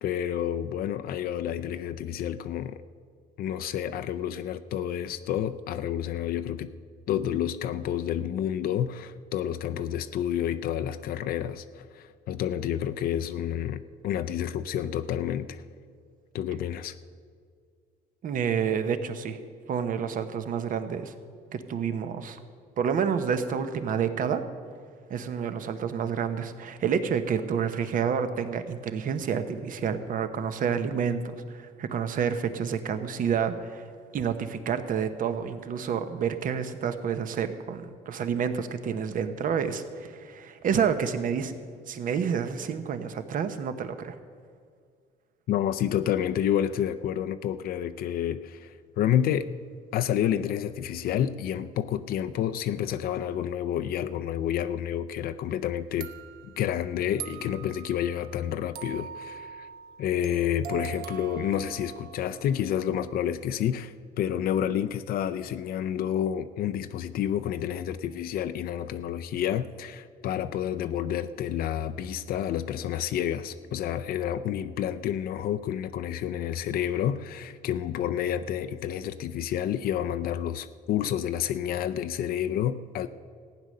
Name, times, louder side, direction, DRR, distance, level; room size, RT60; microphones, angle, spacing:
voice 1, 0.0-2.8 3.4-6.7 7.1-15.6 16.3-17.0 45.5-49.5 49.9-56.1 56.4-59.7 60.0-83.1, left 10 dB, 60° left, 9 dB, 0.5 m, -29 dB
voice 2, 18.2-19.4 19.7-21.1 21.5-22.4 22.8-24.4 25.1-33.9 34.1-41.5 41.9-44.2, right 7 dB, 55° right, 10 dB, 1.0 m, -29 dB
sound 1, 55.5-55.6 56.0-62.8, right 10 dB, 75° right, 0.9 m, -43 dB
15.0 x 9.3 x 6.5 m, 2.1 s
cardioid pair, 110°, 17 cm